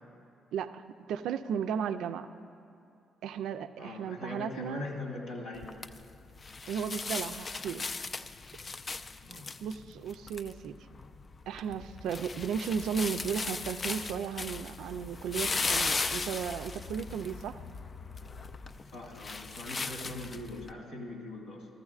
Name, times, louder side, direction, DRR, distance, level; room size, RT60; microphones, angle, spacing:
voice 1, 0.5-2.3 3.2-4.8 6.7-7.8 9.6-10.7 11.5-17.6, right 7 dB, 85° right, 9 dB, 0.4 m, -35 dB
voice 2, 3.8-5.8 9.2-9.5 18.9-21.7, left 2 dB, 90° left, -2 dB, 1.8 m, -41 dB
sound 1, 5.5-20.7, left 4 dB, 35° left, 0.4 m, -37 dB
15.0 x 14.0 x 2.4 m, 2.5 s
cardioid pair, 90°, 0 cm